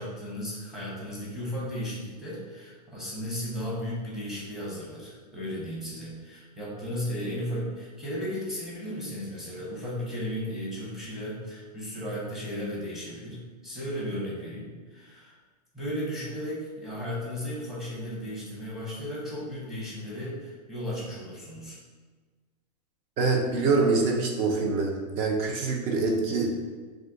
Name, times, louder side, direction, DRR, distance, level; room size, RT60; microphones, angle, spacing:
voice 1, 0.0-15.4 15.7-21.8, equal, ahead, -7 dB, 0.8 m, -35 dB
voice 2, 23.2-26.5, right 3 dB, 30° right, 2 dB, 0.5 m, -25 dB
2.6 x 2.4 x 3.6 m, 1.4 s
supercardioid pair, 150°, 21 cm